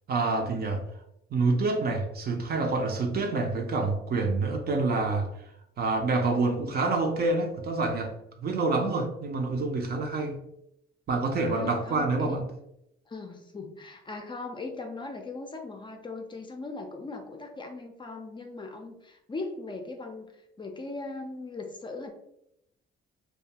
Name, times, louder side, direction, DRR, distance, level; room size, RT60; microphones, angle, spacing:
voice 1, 0.1-0.8 1.3-5.3 5.8-8.1 8.4-10.4 11.1-12.4, right 3 dB, 50° right, 3 dB, 0.6 m, -27 dB
voice 2, 11.4-12.4 13.1-20.3 20.6-22.1, left 3 dB, 25° left, 3 dB, 0.4 m, -39 dB
2.4 x 2.3 x 2.8 m, 0.80 s
cardioid pair, 90°, 20 cm